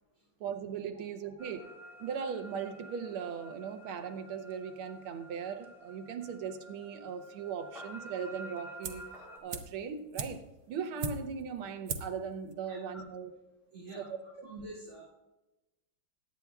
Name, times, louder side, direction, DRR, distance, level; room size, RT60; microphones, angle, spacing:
voice 1, 0.4-1.6 2.0-9.1 9.4-13.4 14.0-14.5, right 6 dB, 85° right, 8 dB, 1.8 m, -39 dB
sound 1, 1.4-9.4, right 1 dB, ahead, 2.7 m, -51 dB
sound 2, 8.8-9.2 9.5-11.5 11.9-12.2 12.5-12.6, right 4 dB, 60° right, 1.1 m, -39 dB
voice 2, 12.7-13.0 13.7-14.1 14.4-15.0, right 2 dB, 45° right, -9 dB, 3.4 m, -46 dB
22.5 x 9.3 x 2.4 m, 1.0 s
omnidirectional pair, 2.3 m